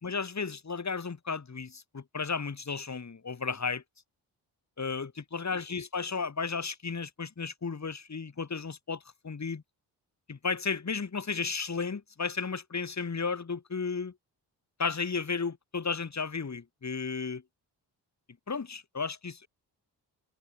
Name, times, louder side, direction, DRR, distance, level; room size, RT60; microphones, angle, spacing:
voice 1, 0.0-3.8 4.8-9.6 10.3-14.1 14.8-17.4 18.5-19.5, left 5 dB, 40° left, 4.3 m, -34 dB
cardioid pair, 60°, 42 cm